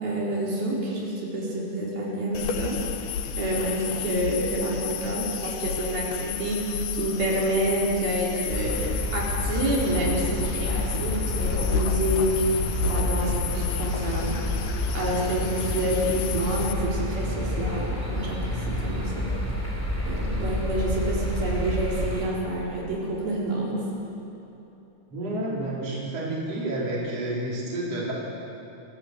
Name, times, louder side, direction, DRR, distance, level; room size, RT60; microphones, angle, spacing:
voice 1, 0.0-2.8 3.4-6.7 6.9-12.3 12.8-14.4 14.9-19.3 20.0-23.7, right 1 dB, 70° right, -5 dB, 5.9 m, -28 dB
sound 1, 2.3-16.7, left 8 dB, 80° left, 3.0 m, -31 dB
sound 2, 8.5-22.3, left 1 dB, 5° left, 3.6 m, -29 dB
voice 2, 25.1-28.1, right 1 dB, 40° right, -5 dB, 5.2 m, -30 dB
28.5 x 16.0 x 8.1 m, 3.0 s
omnidirectional pair, 4.4 m